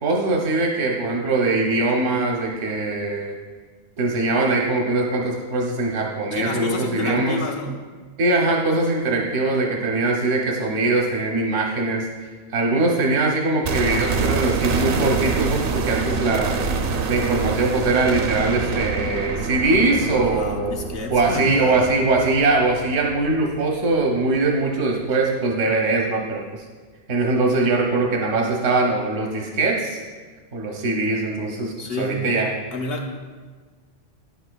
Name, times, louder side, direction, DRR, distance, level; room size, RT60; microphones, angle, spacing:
voice 1, 0.0-3.4 4.0-7.4 8.2-12.1 12.5-16.6 17.1-20.7 21.1-26.4 27.1-30.0 30.5-32.5, right 3 dB, 85° right, 0 dB, 1.2 m, -21 dB
voice 2, 6.3-7.8 20.2-22.0 31.8-32.3 32.7-33.3, left 2 dB, 55° left, 2 dB, 1.0 m, -30 dB
sound 1, 13.6-23.7 23.9-24.0, right 4 dB, 60° right, 0.6 m, -26 dB
10.0 x 7.0 x 2.2 m, 1.4 s
omnidirectional pair, 1.2 m